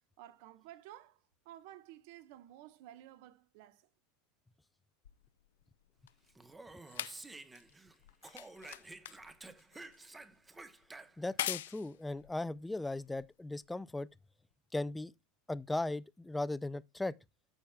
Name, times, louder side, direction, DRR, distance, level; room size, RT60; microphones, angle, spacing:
voice 1, 0.0-3.9, right 13 dB, 60° right, 1.1 m, -54 dB
sound 1, 5.0-13.7 14.5-14.6, left 13 dB, 85° left, 0.5 m, -45 dB
Speech, 6.3-7.9 8.2-11.4, right 2 dB, 10° right, 0.8 m, -51 dB
voice 2, 11.2-14.1 14.7-15.1 15.5-17.1, left 2 dB, 5° left, 0.4 m, -37 dB
14.0 x 5.8 x 2.3 m
supercardioid pair, 140°, 0 cm